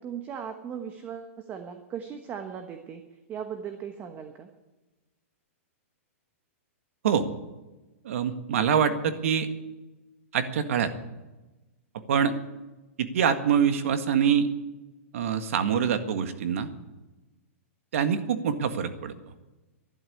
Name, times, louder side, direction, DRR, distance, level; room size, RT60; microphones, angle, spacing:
voice 1, 0.0-3.0 3.3-4.5, right 8 dB, 25° right, 7 dB, 1.2 m, -38 dB
voice 2, 8.0-9.5 10.3-10.9 12.1-12.3 13.0-14.5 15.1-16.7 17.9-19.1, right 7 dB, 70° right, 9 dB, 1.8 m, -25 dB
12.0 x 11.5 x 8.7 m, 1.1 s
hypercardioid pair, 150°, 8 cm